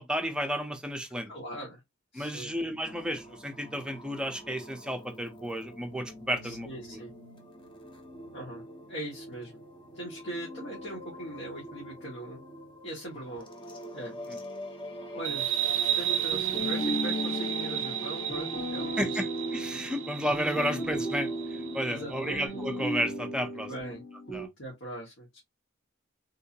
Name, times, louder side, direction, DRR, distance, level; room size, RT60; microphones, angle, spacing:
voice 1, 0.0-1.3 2.1-6.7 14.3-14.4 19.0-23.7 24.3-24.5, equal, 5° right, 0.6 m, -32 dB
voice 2, 1.3-1.8 2.1-2.5 6.4-7.1 8.3-8.6 8.9-9.5 9.9-12.4 12.8-13.5 13.9-14.1 15.1-15.4 15.8-19.2 21.8-22.4 23.7-24.0 24.6-25.4, right 1 dB, 65° left, 1.6 m, -40 dB
sound 1, 2.8-22.5, equal, 25° left, 0.9 m, -45 dB
sound 2, 15.2-22.4, right 11 dB, 70° right, 0.4 m, -33 dB
sound 3, 16.3-24.5, equal, 90° left, 2.2 m, -35 dB
3.7 x 2.8 x 2.8 m
head